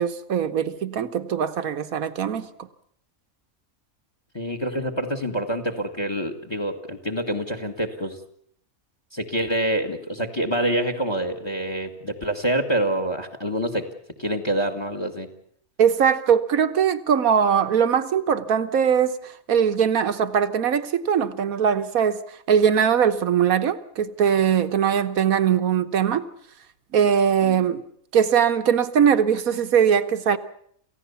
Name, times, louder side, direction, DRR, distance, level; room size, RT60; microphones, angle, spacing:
voice 1, 0.0-2.5 15.8-22.2 22.5-26.2 26.9-27.8 28.1-30.4, right 8 dB, 80° right, 10 dB, 1.5 m, -21 dB
voice 2, 4.3-8.2 9.1-13.8 14.2-15.3, right 1 dB, 20° left, 7 dB, 1.7 m, -26 dB
28.0 x 15.5 x 7.0 m, 0.65 s
omnidirectional pair, 1.5 m